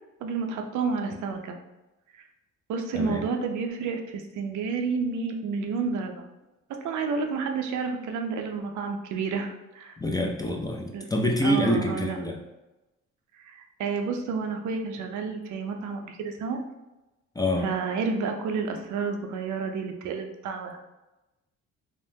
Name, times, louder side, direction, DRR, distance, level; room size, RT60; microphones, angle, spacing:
voice 1, 0.2-1.6 2.1-2.2 2.7-6.2 6.7-9.9 10.9-11.1 11.4-12.2 13.4-16.6 17.6-20.8, right 5 dB, 75° right, 5 dB, 0.5 m, -30 dB
voice 2, 2.9-3.3 10.0-12.4 17.4-17.7, left 1 dB, 15° left, 1 dB, 0.3 m, -26 dB
3.5 x 2.0 x 2.7 m, 1.0 s
cardioid pair, 90°, 30 cm